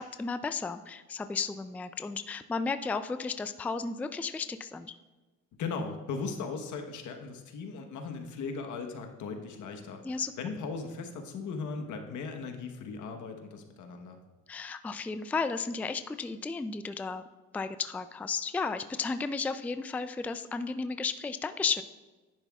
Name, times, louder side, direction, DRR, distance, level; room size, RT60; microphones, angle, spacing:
voice 1, 0.0-4.9 10.0-10.3 14.5-17.2 17.5-21.8, left 4 dB, 5° left, 10 dB, 0.3 m, -33 dB
voice 2, 5.6-14.2, left 4 dB, 75° left, 4 dB, 1.2 m, -38 dB
10.5 x 10.0 x 2.4 m, 1.2 s
cardioid pair, 90°, 30 cm